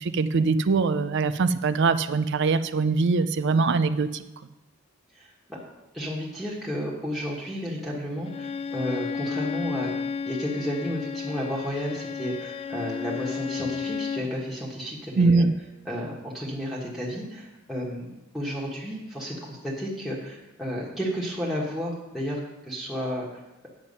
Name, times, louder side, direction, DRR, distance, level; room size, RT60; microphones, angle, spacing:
voice 1, 0.0-4.2 15.2-15.5, right 4 dB, 60° right, 12 dB, 0.5 m, -22 dB
voice 2, 5.1-5.6 5.9-15.4 15.8-23.7, equal, ahead, -4 dB, 1.5 m, -32 dB
Bowed string instrument, 8.3-14.3, left 6 dB, 30° left, 0.3 m, -32 dB
9.1 x 7.5 x 5.4 m, 0.98 s
head